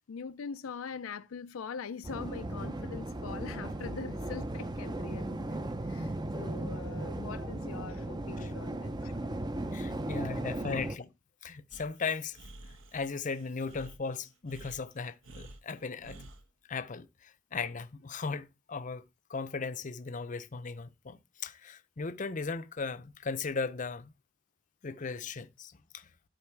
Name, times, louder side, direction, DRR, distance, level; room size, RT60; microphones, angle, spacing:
voice 1, 0.0-9.1 10.1-10.5, left 6 dB, 85° left, 0.5 m, -43 dB
sound 1, 2.0-11.0, right 1 dB, 20° right, 0.5 m, -36 dB
voice 2, 9.7-11.1 11.4-12.4 12.9-16.2 16.7-19.0 19.3-24.1 24.8-26.1, left 4 dB, 40° left, 0.6 m, -37 dB
Breathing, 11.7-16.4, right 2 dB, 70° right, 1.2 m, -51 dB
12.5 x 4.2 x 4.5 m
head